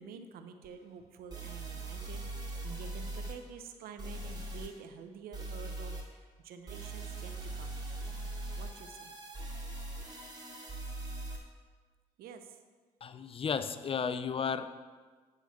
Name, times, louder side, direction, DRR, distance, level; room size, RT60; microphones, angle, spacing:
voice 1, 0.0-7.8 8.5-9.1 12.2-12.6, right 6 dB, 70° right, 8 dB, 0.8 m, -49 dB
sound 1, 0.6-0.7 1.3-3.3 4.0-4.7 5.3-6.0 6.7-11.4, right 2 dB, 25° right, 2.4 m, -41 dB
voice 2, 13.0-14.8, left 6 dB, 35° left, 11 dB, 0.6 m, -34 dB
9.8 x 3.9 x 7.3 m, 1.5 s
supercardioid pair, 60°, 16 cm